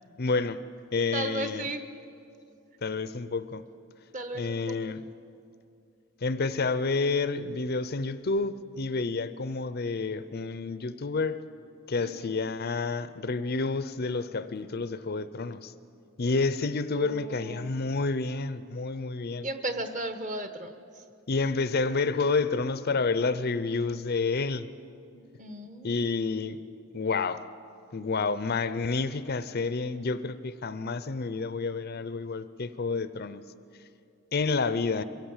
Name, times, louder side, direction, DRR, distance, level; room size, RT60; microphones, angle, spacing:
voice 1, 0.2-0.6 0.9-1.7 2.8-3.6 4.4-5.0 6.2-11.4 11.9-15.7 16.2-19.5 21.3-24.7 25.8-26.6 26.9-27.4 27.9-33.4 34.3-35.0, left 4 dB, 45° left, 13 dB, 0.6 m, -29 dB
voice 2, 1.1-1.9 4.1-4.9 12.0-12.3 16.9-17.7 19.4-21.0 25.4-26.2, right 2 dB, 35° right, 8 dB, 1.1 m, -36 dB
23.0 x 16.5 x 7.3 m, 2.5 s
head